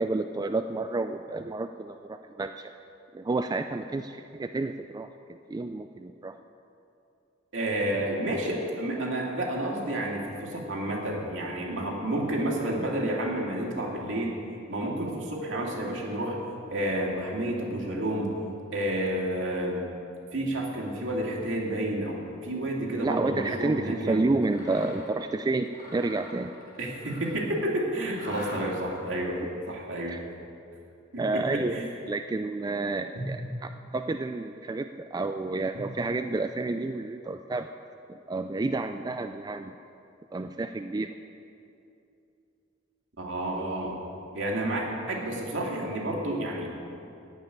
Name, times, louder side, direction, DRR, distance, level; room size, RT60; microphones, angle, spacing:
voice 1, 0.0-2.7 3.1-6.4 22.9-26.5 30.1-30.2 31.2-37.7 38.1-39.7 40.3-41.1, right 2 dB, 20° right, 7 dB, 0.3 m, -30 dB
voice 2, 7.5-14.4 14.7-16.4 16.7-18.4 18.7-19.9 20.3-24.3 26.8-29.4 29.7-30.2 31.1-31.9 43.2-44.0 44.3-46.8, right 1 dB, 65° right, -1 dB, 2.4 m, -30 dB
Mechanisms, 24.4-25.1 25.6-27.5 28.1-29.0, left 1 dB, 45° left, 3.8 m, -44 dB
15.0 x 5.5 x 10.0 m, 2.7 s
head